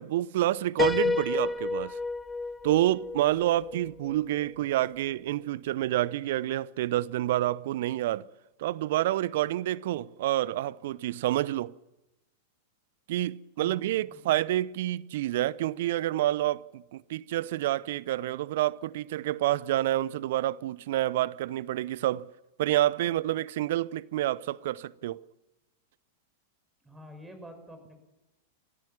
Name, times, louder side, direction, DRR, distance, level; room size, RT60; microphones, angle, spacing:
voice 1, 0.0-2.0 2.6-8.2 8.6-11.7 13.1-22.3 22.6-25.2, right 14 dB, 60° right, 0.7 m, -28 dB
Piano, 0.8-4.5, left 3 dB, 15° left, 0.9 m, -31 dB
voice 2, 13.6-14.4 26.8-28.0, equal, 10° right, 6.1 m, -48 dB
29.5 x 15.0 x 7.2 m
figure-of-eight pair, 95°, 0 cm